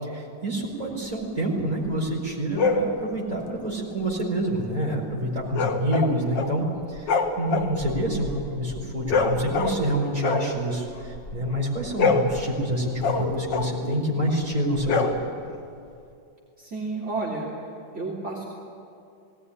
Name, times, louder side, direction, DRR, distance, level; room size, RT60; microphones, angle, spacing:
voice 1, 0.0-6.6 6.9-7.1 7.4-10.9 11.3-15.2, right 1 dB, 20° right, -3 dB, 4.7 m, -27 dB
sound 1, 2.5-2.9 5.5-6.6 6.9-9.9 10.2-11.4 11.8-13.9 14.8-15.6, left 4 dB, 80° left, 2.0 m, -26 dB
voice 2, 8.1-8.6 16.6-17.4 17.9-18.4, right 3 dB, 40° right, -4 dB, 3.3 m, -32 dB
19.5 x 18.0 x 10.0 m, 2.5 s
omnidirectional pair, 1.9 m